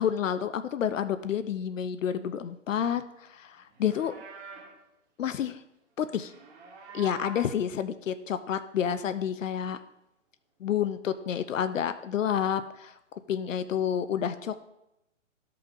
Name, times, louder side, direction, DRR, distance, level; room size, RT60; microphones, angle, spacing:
voice 1, 0.0-4.1 5.2-5.6 6.0-6.3 6.9-9.8 10.6-14.6, left 9 dB, 80° left, 12 dB, 0.6 m, -29 dB
Livestock farm animals working animals, 3.7-4.8 6.1-7.6, right 4 dB, 20° right, 1.4 m, -46 dB
14.5 x 5.6 x 2.7 m, 0.87 s
hypercardioid pair, 145°, 38 cm